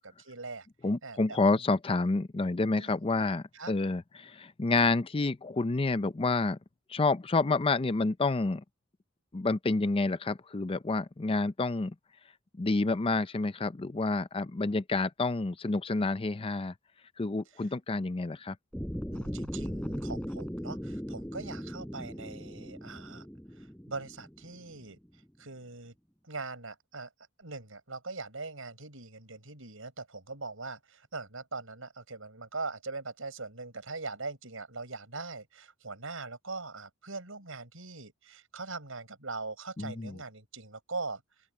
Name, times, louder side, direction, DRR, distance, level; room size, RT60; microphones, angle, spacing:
voice 1, 0.0-0.7 1.0-1.6 2.7-2.9 3.5-3.7 19.1-23.3 23.5-25.0 25.4-25.9 26.3-27.1 27.4-41.2, right 3 dB, 70° right, 7.1 m, -41 dB
voice 2, 0.8-6.6 6.9-8.6 9.3-11.9 12.6-16.7 17.2-18.6 39.8-40.2, left 3 dB, 25° left, 0.5 m, -29 dB
sound 1, 18.7-24.8, equal, 5° left, 5.1 m, -38 dB
open air
head